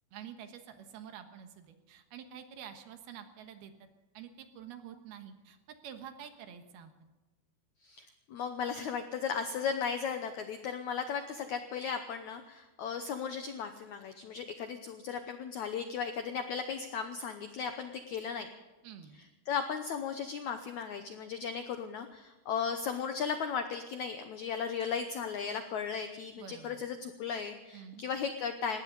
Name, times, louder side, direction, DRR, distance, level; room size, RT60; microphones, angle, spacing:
voice 1, 0.1-3.7 4.1-6.9 18.8-19.2 26.4-26.8 27.7-28.0, right 8 dB, 75° right, 7 dB, 3.2 m, -48 dB
voice 2, 7.8-18.5 19.5-28.8, left 6 dB, 85° left, 7 dB, 1.7 m, -36 dB
20.5 x 17.0 x 4.0 m, 1.1 s
omnidirectional pair, 4.6 m